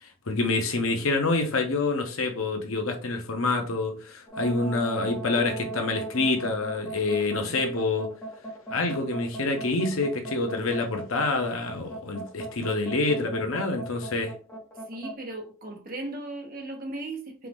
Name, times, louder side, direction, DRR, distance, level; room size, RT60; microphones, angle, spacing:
voice 1, 0.0-8.1 8.7-14.3, left 3 dB, 70° left, 0.9 m, -27 dB
sound 1, 4.3-15.1, right 2 dB, 15° left, 1.1 m, -38 dB
voice 2, 14.9-17.5, right 2 dB, 40° right, 1.1 m, -37 dB
4.6 x 2.5 x 3.6 m
head